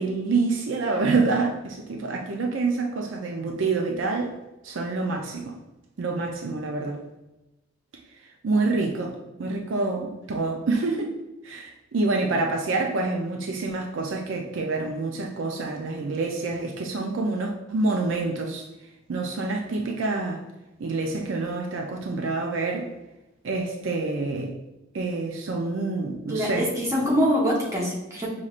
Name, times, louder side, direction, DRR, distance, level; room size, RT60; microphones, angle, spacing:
voice 1, 0.0-4.3 4.6-5.6 6.0-7.0 8.4-9.1 9.4-11.2 11.4-18.6 19.1-20.4 20.8-22.9 23.4-24.5 24.9-26.7, right 3 dB, 65° right, 1 dB, 0.5 m, -27 dB
voice 2, 26.3-28.3, equal, 15° right, -4 dB, 1.0 m, -24 dB
5.5 x 3.1 x 2.4 m, 0.98 s
head